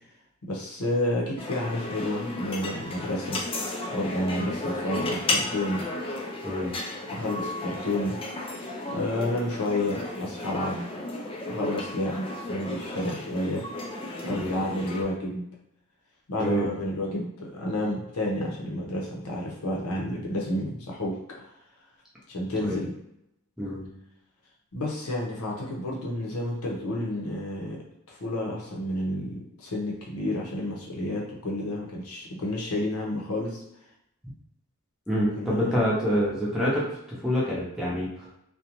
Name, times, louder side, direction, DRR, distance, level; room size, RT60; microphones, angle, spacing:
voice 1, 0.4-3.4 3.9-5.8 7.0-8.2 8.9-10.9 11.4-13.6 14.2-15.4 16.3-21.5 22.3-22.9 24.7-27.8 28.1-33.6 35.4-35.8, left 1 dB, 90° left, -2 dB, 0.7 m, -30 dB
sound 1, 1.4-15.0, left 2 dB, 25° left, 0.3 m, -34 dB
voice 2, 16.4-16.7 22.6-22.8 23.6-23.8 35.1-38.3, equal, ahead, -6 dB, 0.7 m, -27 dB
2.5 x 2.2 x 2.9 m, 0.80 s
head